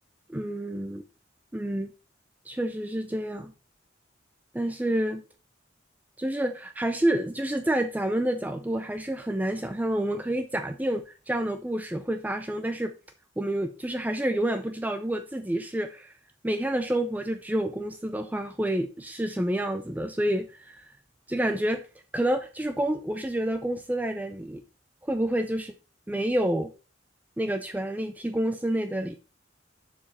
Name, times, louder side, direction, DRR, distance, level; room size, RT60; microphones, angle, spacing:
voice 1, 0.3-1.0 1.5-1.9 2.5-3.5 4.5-5.2 6.2-12.9 13.4-16.1 16.4-20.9 21.3-21.8 22.1-24.6 25.0-25.7 26.1-26.7 27.4-29.2, right 1 dB, 10° right, 7 dB, 0.4 m, -28 dB
7.1 x 4.9 x 5.4 m, 0.34 s
head